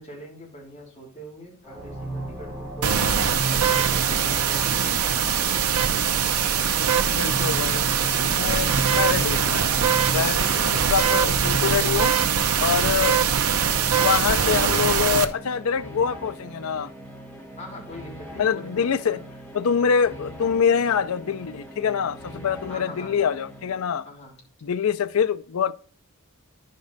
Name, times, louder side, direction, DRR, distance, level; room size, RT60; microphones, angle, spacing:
voice 1, 0.0-3.1 3.6-6.1 11.0-11.4 17.6-19.2 22.7-23.2 24.0-24.4, left 1 dB, 30° left, 3.3 m, -42 dB
sound 1, 1.6-15.0, right 1 dB, 15° right, 3.2 m, -36 dB
sound 2, 2.8-15.2, right 7 dB, 90° right, 0.8 m, -22 dB
voice 2, 7.1-7.8 8.2-9.7 10.1-12.2 12.6-13.2 14.0-16.9 18.4-19.2 19.5-24.1 24.6-25.7, left 7 dB, 70° left, 0.5 m, -25 dB
sound 3, 7.3-24.1, equal, 10° left, 2.0 m, -42 dB
10.5 x 5.3 x 4.0 m
head